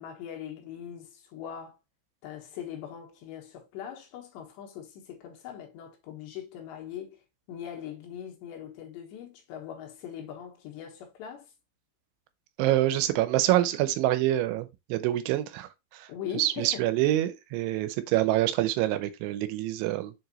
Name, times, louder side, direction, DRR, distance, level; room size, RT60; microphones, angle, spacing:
voice 1, 0.0-1.8 2.2-7.2 7.5-11.5 16.1-16.9, left 9 dB, 75° left, 3.4 m, -41 dB
voice 2, 12.6-20.1, right 14 dB, 90° right, 3.2 m, -26 dB
7.1 x 4.8 x 3.0 m
omnidirectional pair, 5.3 m